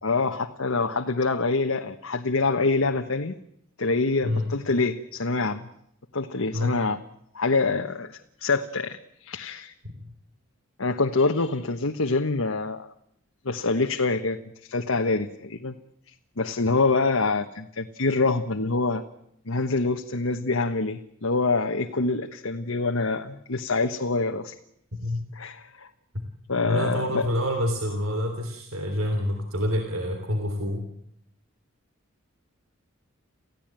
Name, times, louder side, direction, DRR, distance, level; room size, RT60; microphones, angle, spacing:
voice 1, 0.0-3.3 3.8-5.6 6.1-7.0 7.3-9.7 10.8-12.8 13.4-14.4 14.7-15.8 16.4-19.0 19.5-24.5 25.3-25.9 26.5-27.3, left 3 dB, 85° left, 4 dB, 1.3 m, -25 dB
voice 2, 26.6-30.8, left 1 dB, 80° right, 5 dB, 3.4 m, -27 dB
29.0 x 16.0 x 9.0 m, 0.73 s
head